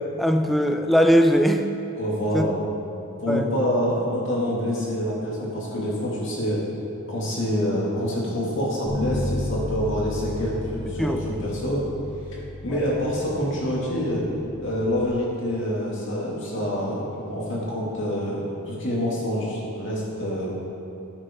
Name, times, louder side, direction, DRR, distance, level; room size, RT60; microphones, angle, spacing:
voice 1, 0.0-1.7 2.3-2.5 3.3-3.5 11.0-11.2, equal, ahead, 6 dB, 0.4 m, -20 dB
voice 2, 2.0-2.5 3.2-6.6 7.1-11.1 11.4-11.9 12.6-14.2 14.6-20.5, equal, 55° left, -5 dB, 2.8 m, -26 dB
Bass guitar, 8.9-15.1, left 1 dB, 30° right, 2.6 m, -33 dB
12.0 x 8.9 x 3.9 m, 2.8 s
head